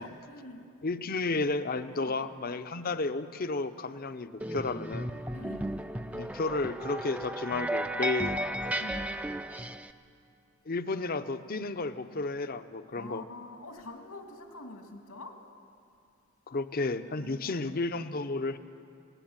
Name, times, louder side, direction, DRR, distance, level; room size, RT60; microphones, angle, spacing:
voice 1, 0.0-0.7 1.9-2.2 5.3-5.8 8.2-8.4 8.8-9.1 12.9-15.3 17.1-17.6, left 2 dB, 85° left, 3 dB, 2.9 m, -46 dB
voice 2, 0.8-5.1 6.1-8.4 8.7-8.9 10.7-13.2 16.5-18.6, left 3 dB, 45° left, 11 dB, 0.7 m, -32 dB
sound 1, 4.4-9.9, right 1 dB, 5° right, 0.5 m, -34 dB
18.5 x 18.0 x 9.0 m, 2.5 s
head